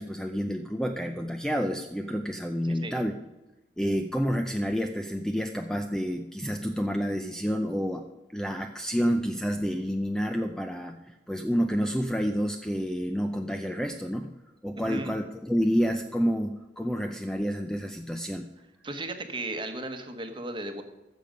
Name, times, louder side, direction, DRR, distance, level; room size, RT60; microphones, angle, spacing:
voice 1, 0.0-3.1 3.8-8.0 8.3-14.3 14.6-18.5, equal, 5° left, 5 dB, 0.5 m, -29 dB
voice 2, 2.6-3.0 14.8-15.1 18.8-20.8, right 2 dB, 25° right, 7 dB, 1.1 m, -35 dB
14.5 x 6.8 x 5.1 m, 1.0 s
head